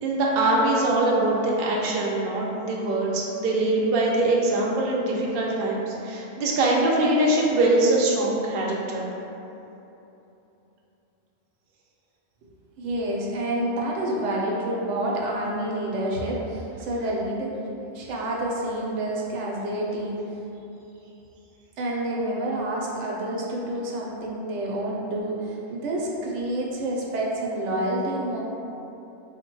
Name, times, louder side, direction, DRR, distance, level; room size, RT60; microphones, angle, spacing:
voice 1, 0.0-9.1, right 2 dB, 55° right, -3 dB, 0.7 m, -23 dB
voice 2, 12.8-17.6 17.9-20.2 21.8-28.4, right 1 dB, 75° right, -3 dB, 1.0 m, -28 dB
3.8 x 2.1 x 4.4 m, 3.0 s
omnidirectional pair, 1.3 m